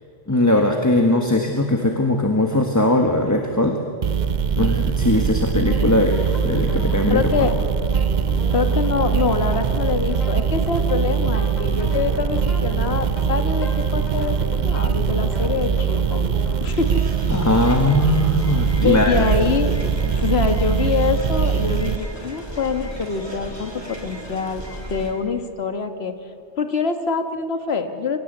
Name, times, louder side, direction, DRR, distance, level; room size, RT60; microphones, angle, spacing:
voice 1, 0.3-3.8 4.6-7.5 17.3-19.2, left 1 dB, 15° left, 3 dB, 1.3 m, -20 dB
sound 1, 4.0-22.0, right 6 dB, 50° right, 0.6 m, -22 dB
sound 2, 5.6-16.6, equal, 40° left, 3.0 m, -35 dB
voice 2, 7.1-7.5 8.5-16.3 16.6-17.0 17.5-17.6 18.8-24.6 24.9-26.1 26.6-28.2, left 5 dB, 65° left, 7 dB, 1.6 m, -25 dB
sound 3, 16.7-25.1, equal, 20° right, 2.9 m, -35 dB
23.5 x 17.5 x 8.0 m, 2.5 s
omnidirectional pair, 1.2 m